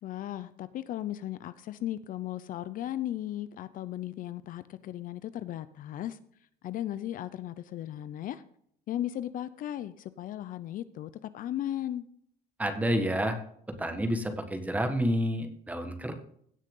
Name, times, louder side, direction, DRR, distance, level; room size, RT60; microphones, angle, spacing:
voice 1, 0.0-6.2 6.6-8.4 8.9-12.1, left 12 dB, 55° left, 0.6 m, -36 dB
voice 2, 12.6-13.4 13.8-16.1, equal, 10° right, 1.6 m, -29 dB
17.0 x 6.4 x 3.8 m
cardioid pair, 130°, 17 cm